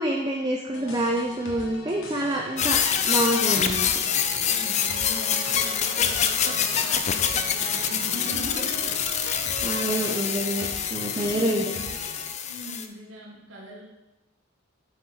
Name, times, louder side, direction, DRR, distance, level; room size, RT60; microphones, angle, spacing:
voice 1, 0.0-4.0 9.2-11.7, right 1 dB, 20° right, 0 dB, 0.5 m, -27 dB
sound 1, 0.7-12.3, left 1 dB, 75° left, 1.3 m, -39 dB
sound 2, 2.6-12.9, left 8 dB, 35° left, 0.4 m, -26 dB
voice 2, 4.5-9.0 10.5-11.9 12.4-13.8, right 1 dB, 70° right, -4 dB, 1.7 m, -41 dB
7.9 x 4.1 x 4.6 m, 1.0 s
head